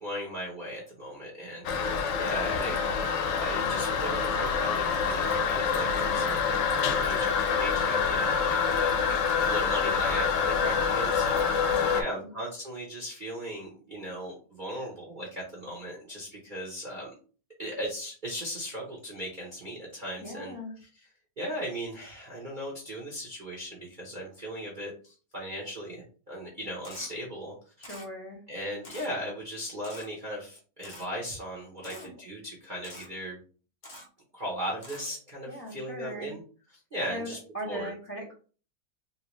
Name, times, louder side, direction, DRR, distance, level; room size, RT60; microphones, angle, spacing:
voice 1, 0.0-2.7 3.4-8.9 9.2-17.1 17.6-20.5 20.8-21.0 21.4-27.9 28.5-33.4 34.3-36.4 36.9-37.4 37.6-37.9, equal, 40° right, -3 dB, 0.7 m, -37 dB
Toilet flush, 1.6-12.0, left 6 dB, 90° left, 1.3 m, -26 dB
voice 2, 2.2-2.7 11.7-12.3 20.2-20.7 27.8-28.4 31.8-32.1 35.5-36.3 37.1-38.3, equal, 25° left, -3 dB, 0.9 m, -40 dB
Camera, 26.8-27.1 27.8-28.1 28.8-29.1 29.8-30.1 30.8-31.1 31.8-32.1 32.8-33.1 33.8-34.1 34.8-35.0, left 1 dB, 70° left, 0.4 m, -46 dB
3.4 x 2.7 x 3.0 m, 0.39 s
omnidirectional pair, 1.9 m